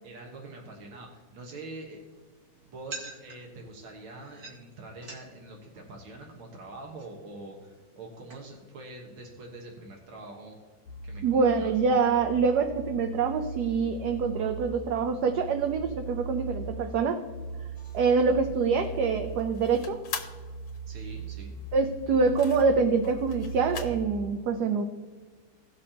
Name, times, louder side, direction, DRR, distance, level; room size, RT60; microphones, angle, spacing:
voice 1, 0.0-2.0 2.6-10.6 11.0-11.7 20.9-21.6, right 2 dB, 90° right, 0 dB, 2.2 m, -44 dB
sound 1, 1.4-8.7, right 3 dB, 50° right, 2.2 m, -49 dB
sound 2, 10.9-24.0, right 3 dB, 85° left, 1.5 m, -39 dB
voice 2, 11.2-17.2 17.9-20.0 21.7-24.8, right 5 dB, 65° right, 6 dB, 1.1 m, -25 dB
sound 3, 17.8-24.0, left 5 dB, 65° left, 1.8 m, -43 dB
17.5 x 6.4 x 2.8 m, 1.4 s
omnidirectional pair, 2.1 m